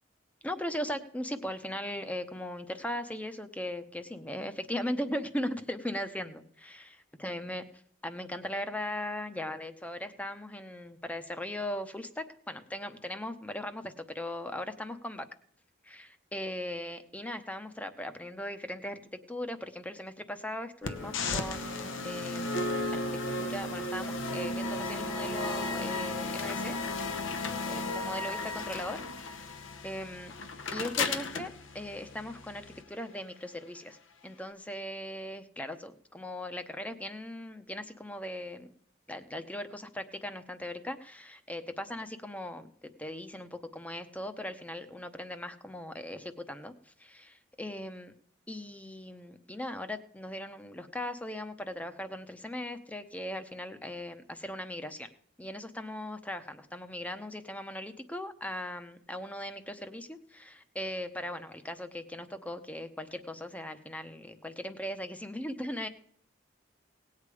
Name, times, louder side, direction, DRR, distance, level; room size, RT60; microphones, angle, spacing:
voice 1, 0.4-6.9 7.2-7.6 8.0-15.2 15.8-23.0 23.4-26.8 27.7-30.3 30.7-34.0 34.2-38.7 39.1-42.7 43.0-48.1 48.5-55.1 55.4-65.9, left 1 dB, 5° left, 9 dB, 0.8 m, -39 dB
sound 1, 20.8-32.8, left 2 dB, 85° left, 1.0 m, -34 dB
18.0 x 8.5 x 4.9 m, 0.64 s
head